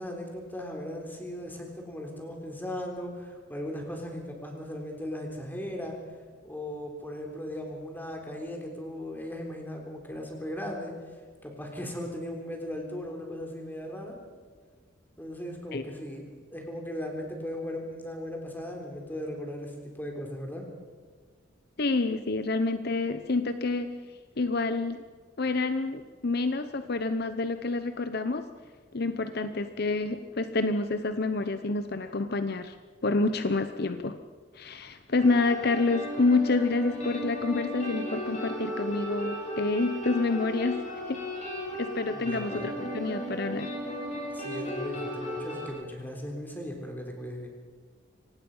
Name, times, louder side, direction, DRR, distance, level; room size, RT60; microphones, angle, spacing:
voice 1, 0.0-6.0 6.4-10.9 11.4-14.2 15.2-16.2 16.5-20.7 42.1-42.7 44.3-47.5, left 1 dB, 10° left, 1 dB, 3.7 m, -37 dB
voice 2, 21.8-23.9 24.4-25.0 25.4-28.5 28.9-32.8 33.0-34.2 34.5-40.8 41.1-41.2 41.8-43.7, left 3 dB, 55° left, 9 dB, 0.8 m, -28 dB
sound 1, 35.2-45.7, equal, 35° left, 7.8 m, -35 dB
25.0 x 18.5 x 5.6 m, 1.5 s
head